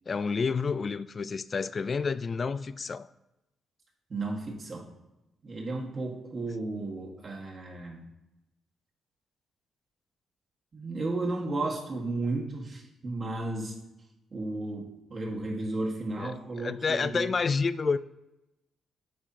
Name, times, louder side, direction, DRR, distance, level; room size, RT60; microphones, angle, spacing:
voice 1, 0.1-3.1 16.2-18.0, left 5 dB, 45° left, 0.3 m, -29 dB
voice 2, 4.1-4.9 5.4-8.1 10.7-13.8 14.3-17.3, right 2 dB, 50° right, 1.7 m, -34 dB
9.3 x 3.6 x 2.9 m
hypercardioid pair, 50°, 0 cm